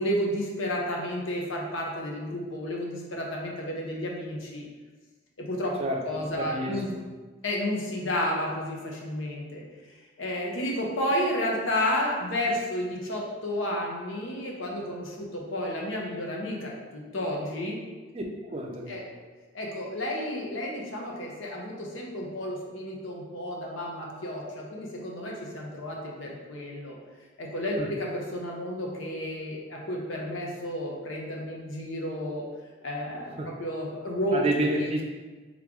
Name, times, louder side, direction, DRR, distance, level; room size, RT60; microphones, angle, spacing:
voice 1, 0.0-4.6 5.4-5.7 6.1-6.9 7.4-9.6 10.2-17.8 18.9-19.0 19.5-27.0 27.4-32.4 32.8-34.4 34.7-34.9, left 1 dB, 80° left, -1 dB, 0.8 m, -31 dB
voice 2, 5.8-7.0 18.1-19.0 27.8-27.9 33.4-33.5 34.3-35.0, right 1 dB, 30° right, 0 dB, 0.5 m, -30 dB
3.6 x 3.3 x 3.6 m, 1.3 s
head